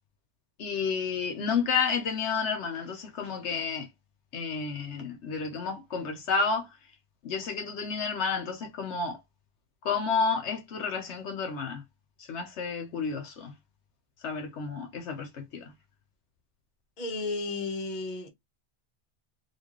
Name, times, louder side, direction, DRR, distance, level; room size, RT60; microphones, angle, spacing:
voice 1, 0.6-3.9 4.3-6.7 7.2-9.2 9.8-11.8 12.3-13.5 14.2-15.7, left 5 dB, 70° left, 1.1 m, -31 dB
voice 2, 17.0-18.3, left 3 dB, 40° left, 1.1 m, -33 dB
4.4 x 2.4 x 2.9 m
omnidirectional pair, 1.2 m